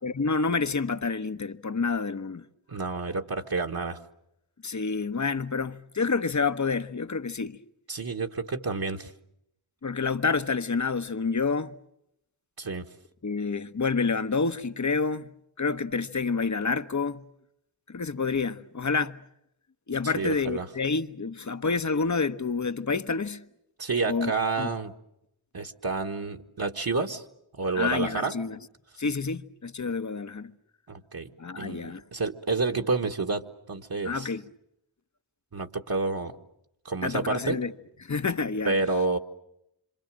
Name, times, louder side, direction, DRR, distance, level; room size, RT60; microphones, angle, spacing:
voice 1, 0.0-2.5 4.6-7.6 9.8-11.7 13.2-15.3 15.6-17.2 17.9-19.2 19.9-23.5 24.1-24.3 24.6-24.7 27.7-28.6 29.0-30.5 31.4-32.0 34.0-34.4 37.0-37.7 38.0-38.8, left 4 dB, 40° left, 1.1 m, -28 dB
voice 2, 2.7-4.0 7.9-9.1 12.6-12.9 20.2-20.7 23.8-24.9 25.5-27.2 27.6-28.4 30.9-31.3 31.6-34.3 35.5-36.3 36.9-37.6 38.7-39.2, right 3 dB, 50° right, 1.7 m, -29 dB
27.0 x 26.0 x 7.6 m
cardioid pair, 50°, 47 cm